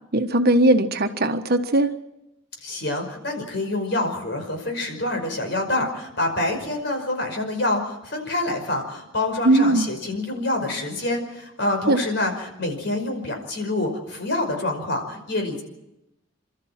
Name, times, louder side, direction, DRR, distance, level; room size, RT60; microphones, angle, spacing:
voice 1, 0.1-1.9 9.4-9.9 11.9-12.0, right 1 dB, 50° right, 7 dB, 1.4 m, -19 dB
voice 2, 2.6-15.6, left 2 dB, 60° left, 3 dB, 5.4 m, -26 dB
29.0 x 13.5 x 7.4 m, 0.91 s
head